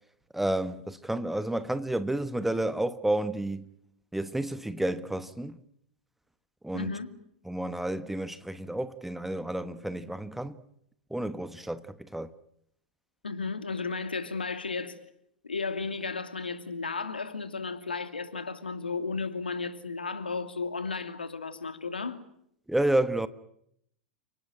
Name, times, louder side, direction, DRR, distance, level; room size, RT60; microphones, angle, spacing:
voice 1, 0.3-3.7 4.1-5.6 6.6-7.0 7.4-10.6 11.1-12.3 22.7-23.3, right 1 dB, 5° right, 1.2 m, -30 dB
voice 2, 6.7-7.1 13.2-15.0 15.4-22.2, left 4 dB, 80° left, 2.7 m, -34 dB
30.0 x 19.0 x 9.1 m
figure-of-eight pair, 95°, 5 cm